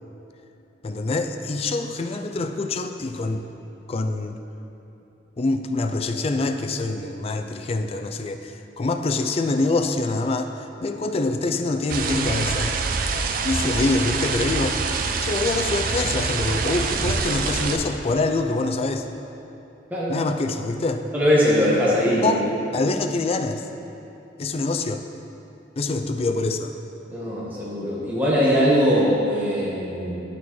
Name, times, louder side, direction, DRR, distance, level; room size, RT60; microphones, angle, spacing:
voice 1, 0.8-3.4 3.9-4.4 5.4-10.5 10.8-12.7 13.4-14.8 15.2-19.1 20.1-21.0 22.2-23.6 24.4-25.0 25.8-26.7, left 3 dB, 35° left, 6 dB, 0.4 m, -25 dB
sound 1, 11.9-17.8, right 4 dB, 50° right, 0.4 m, -25 dB
voice 2, 21.1-22.4 27.1-30.2, equal, 10° right, -7 dB, 1.2 m, -21 dB
9.9 x 6.1 x 3.1 m, 3.0 s
head